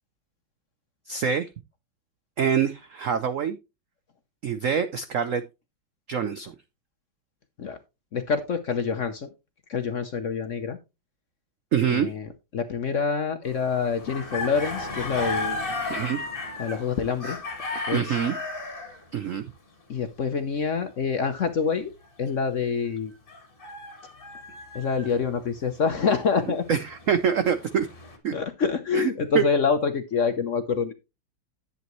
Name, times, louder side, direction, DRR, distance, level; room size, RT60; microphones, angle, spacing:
voice 1, 1.1-1.5 2.4-3.6 4.4-5.4 6.1-6.5 11.7-12.1 15.9-16.2 17.9-18.3 19.1-19.4 26.7-27.9 28.2-28.3 28.9-29.1 29.3-29.4, right 7 dB, 75° right, 11 dB, 0.7 m, -25 dB
voice 2, 8.1-9.3 9.7-10.8 11.9-15.7 16.6-17.4 17.9-18.2 19.9-21.9 22.2-23.1 24.7-26.6 28.3-30.9, left 5 dB, 55° left, 8 dB, 0.9 m, -26 dB
sound 1, 13.4-19.0 23.3-25.3 26.0-28.2, left 2 dB, 25° left, 1.9 m, -34 dB
11.0 x 8.1 x 3.1 m, 0.25 s
omnidirectional pair, 2.2 m